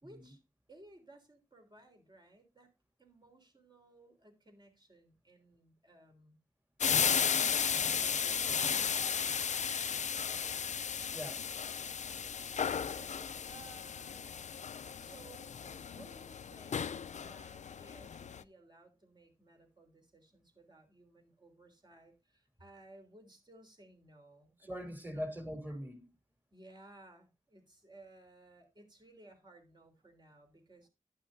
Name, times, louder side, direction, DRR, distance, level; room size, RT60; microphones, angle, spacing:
voice 1, 0.0-0.4 0.7-2.7 3.0-6.4 7.3-10.8 12.5-14.4 15.0-25.3 26.5-30.9, right 2 dB, 35° right, 3.6 m, -59 dB
sound 1, 6.8-18.4, left 7 dB, 65° left, 0.5 m, -34 dB
voice 2, 11.1-11.5 24.6-26.1, equal, 15° right, 2.9 m, -41 dB
11.5 x 10.0 x 2.6 m
wide cardioid pair, 85°, 13 cm